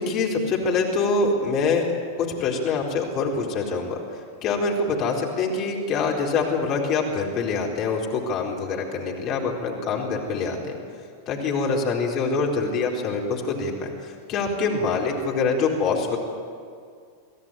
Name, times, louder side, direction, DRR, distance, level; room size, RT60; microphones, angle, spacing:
voice 1, 0.0-1.9 2.2-4.0 4.4-10.8 11.3-16.2, left 4 dB, 35° left, -1 dB, 4.1 m, -25 dB
24.0 x 16.0 x 9.3 m, 2.2 s
figure-of-eight pair, 90°, 0 cm